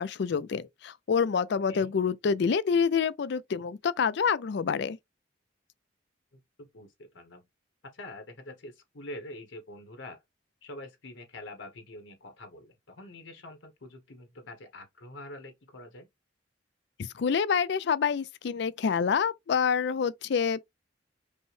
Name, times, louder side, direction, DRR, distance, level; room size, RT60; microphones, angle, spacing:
voice 1, 0.0-5.0 17.0-20.6, left 6 dB, 60° left, 0.4 m, -27 dB
voice 2, 6.3-7.5 7.9-10.2 10.6-16.1, left 1 dB, 80° left, 1.1 m, -45 dB
5.4 x 2.1 x 3.1 m
head